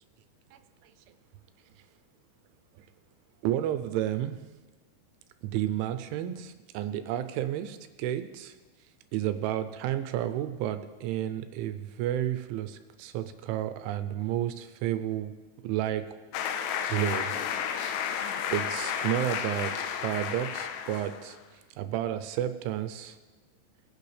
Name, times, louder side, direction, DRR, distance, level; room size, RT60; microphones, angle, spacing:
voice 1, 0.5-0.9 2.8-2.9 3.4-4.4 5.4-8.6 9.1-15.3 15.6-16.1 16.9-17.3 17.7-18.0 18.5-23.2, right 12 dB, 85° right, 10 dB, 2.9 m, -31 dB
sound 1, 16.3-21.4, left 8 dB, 85° left, 3.1 m, -32 dB
21.0 x 9.4 x 3.3 m, 1.2 s
omnidirectional pair, 5.6 m